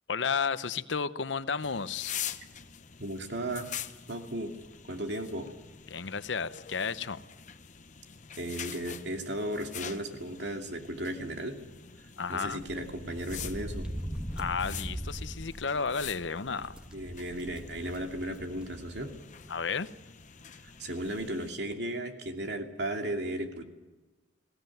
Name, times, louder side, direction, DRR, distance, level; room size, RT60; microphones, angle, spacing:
voice 1, 0.1-2.2 5.9-7.2 12.2-12.6 14.4-16.8 19.5-19.9, left 5 dB, 85° left, 14 dB, 0.8 m, -32 dB
sound 1, 1.6-21.5, left 9 dB, 45° left, 0.9 m, -45 dB
voice 2, 3.0-3.7 4.1-4.5 4.9-5.5 8.4-11.6 12.3-13.9 16.9-19.1 20.8-23.6, right 1 dB, 65° right, 3 dB, 2.6 m, -35 dB
sound 2, 12.4-19.1 19.5-19.6 20.7-20.8 21.0-21.3, equal, 5° right, 1.8 m, -41 dB
21.5 x 17.0 x 9.2 m, 1.2 s
head